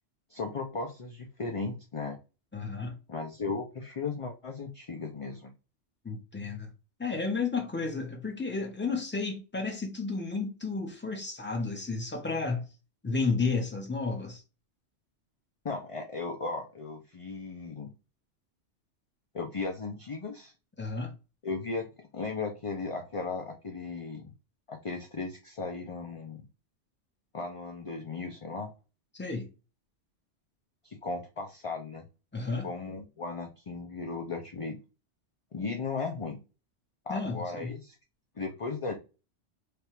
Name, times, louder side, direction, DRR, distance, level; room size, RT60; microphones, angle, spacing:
voice 1, 0.3-2.2 3.1-5.5 15.6-17.9 19.3-20.5 21.4-21.9 22.1-24.3 24.7-26.4 27.3-28.7 30.8-32.1 32.6-34.8 35.5-36.4 37.1-38.0 38.4-39.0, left 4 dB, 35° left, 0.5 m, -36 dB
voice 2, 2.5-3.0 6.0-6.7 7.0-12.6 13.0-14.4 20.8-21.1 29.1-29.5 32.3-32.7 37.1-37.7, left 4 dB, 10° left, 0.9 m, -32 dB
3.4 x 2.4 x 4.4 m
omnidirectional pair, 1.2 m